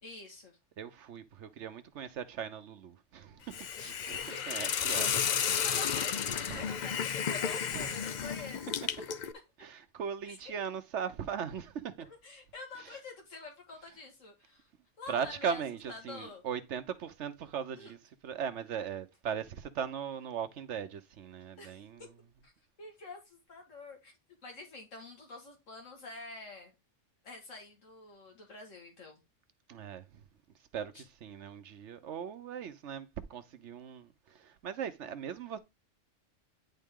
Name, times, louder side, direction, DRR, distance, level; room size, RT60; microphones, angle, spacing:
voice 1, 0.0-0.6 3.8-4.7 5.1-9.1 10.3-10.4 12.1-14.7 15.0-15.6 15.9-16.4 17.8-17.9 21.6-21.8 22.4-22.5 22.8-24.1 24.4-26.7 27.2-29.2 30.9-31.0, left 3 dB, 85° left, 2.2 m, -47 dB
voice 2, 0.8-4.2 4.5-5.1 6.5-6.8 7.7-8.0 9.6-12.1 12.8-12.9 15.1-18.0 18.2-22.1 29.7-30.2 30.7-35.6, right 7 dB, 70° right, 1.0 m, -39 dB
Hiss, 3.5-9.3, left 8 dB, 60° left, 0.5 m, -33 dB
10.5 x 3.7 x 3.6 m
omnidirectional pair, 1.3 m